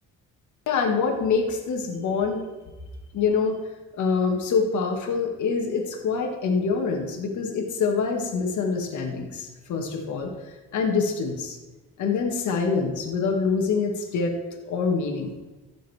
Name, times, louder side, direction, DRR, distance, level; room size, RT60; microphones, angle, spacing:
voice 1, 0.7-2.4 3.1-3.6 4.0-11.6 12.0-14.3 14.7-15.3, left 5 dB, 75° left, 2 dB, 1.8 m, -25 dB
15.0 x 6.5 x 3.5 m, 1.1 s
cardioid pair, 90°, 30 cm